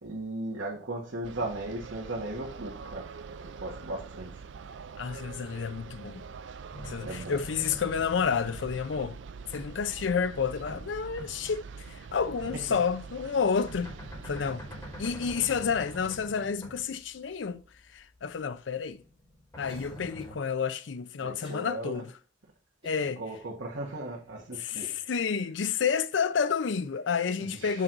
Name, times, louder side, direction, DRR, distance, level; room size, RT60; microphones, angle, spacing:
voice 1, 0.0-4.4 7.0-7.4 12.4-12.6 21.2-22.0 23.0-25.1 27.4-27.8, right 1 dB, 85° right, 1.4 m, -37 dB
sound 1, 1.2-16.1, right 5 dB, 70° right, 0.4 m, -45 dB
voice 2, 5.0-6.2 6.9-9.2 9.5-13.9 14.2-14.7 15.0-17.6 17.9-19.0 19.6-22.0 22.8-23.2 24.6-27.8, left 6 dB, 70° left, 0.5 m, -30 dB
sound 2, 6.7-10.9 11.2-11.6 12.4-18.4 18.9-20.3, equal, 15° left, 2.7 m, -46 dB
Cough, 19.7-20.5 21.4-21.7 22.2-22.3 22.8-23.5 24.1-24.2 24.8-25.1, right 1 dB, 30° right, 2.4 m, -52 dB
6.4 x 3.9 x 6.0 m
head